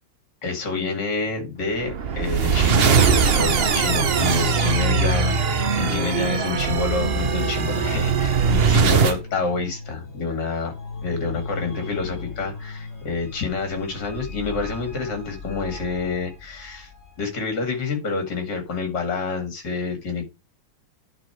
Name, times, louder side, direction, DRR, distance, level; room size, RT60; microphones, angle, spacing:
voice 1, 0.4-2.9 3.3-10.7 11.0-16.9 17.2-20.2, left 4 dB, 70° left, 2.8 m, -28 dB
sound 1, 1.8-9.2, right 5 dB, 45° right, 0.8 m, -20 dB
sound 2, 8.9-17.2, left 4 dB, 40° left, 3.0 m, -37 dB
10.5 x 4.1 x 4.6 m
omnidirectional pair, 2.0 m